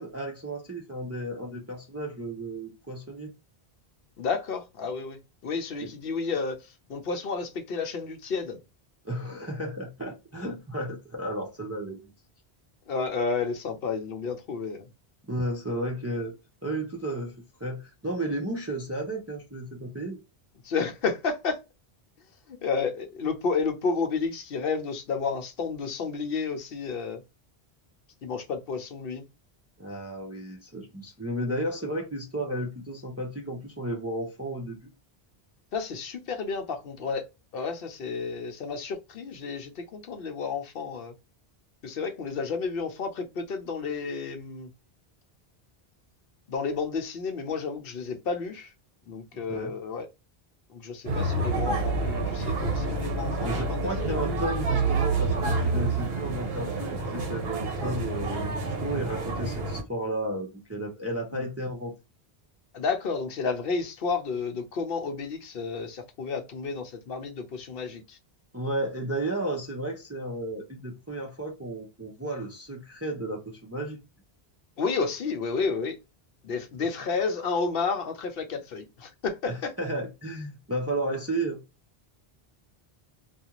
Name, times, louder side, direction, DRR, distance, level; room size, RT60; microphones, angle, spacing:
voice 1, 0.0-3.3 5.8-5.9 9.0-12.1 15.3-16.3 16.6-17.3 17.6-20.2 29.8-34.9 49.5-49.7 53.4-61.9 68.5-74.0 79.5-81.6, right 1 dB, 20° right, 0.4 m, -33 dB
voice 2, 4.2-6.6 6.9-8.6 12.9-14.8 20.6-21.6 22.5-27.2 28.2-29.2 35.7-37.2 37.5-41.1 41.8-44.7 46.5-48.7 49.1-50.1 50.7-54.2 61.3-61.4 62.7-68.2 74.8-76.0 76.4-79.7, left 5 dB, 70° left, 0.8 m, -31 dB
sound 1, 51.1-59.8, right 3 dB, 70° right, 0.9 m, -28 dB
2.4 x 2.3 x 2.8 m
omnidirectional pair, 1.0 m